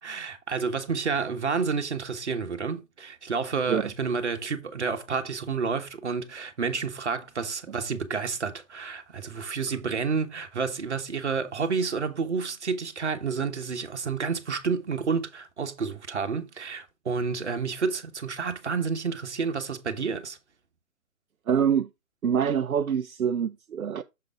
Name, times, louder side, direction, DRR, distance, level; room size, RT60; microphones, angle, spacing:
voice 1, 0.0-20.4, right 5 dB, 55° right, 1.3 m, -30 dB
voice 2, 21.5-21.9 22.2-24.0, right 8 dB, 80° right, 0.6 m, -25 dB
6.7 x 3.8 x 4.7 m
figure-of-eight pair, 150°, 41 cm